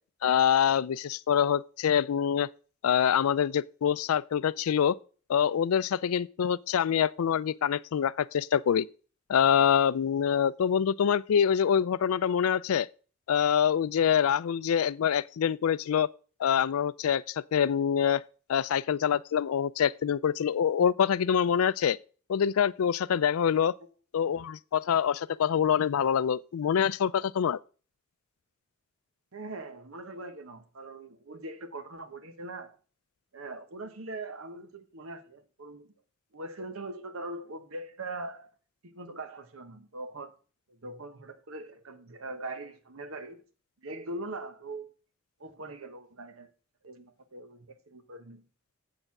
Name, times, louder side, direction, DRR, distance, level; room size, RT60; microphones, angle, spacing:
voice 1, 0.2-2.5 2.8-5.0 5.3-8.9 9.3-12.9 13.3-16.1 16.4-18.2 18.5-22.0 22.3-23.7 24.1-27.6, left 8 dB, 90° left, 0.4 m, -25 dB
voice 2, 29.3-32.8 33.3-35.9 36.3-38.5 38.8-40.3 40.7-43.4 43.8-44.9 45.4-46.5 46.8-48.5, right 2 dB, 80° right, 1.2 m, -41 dB
7.9 x 6.6 x 5.9 m
head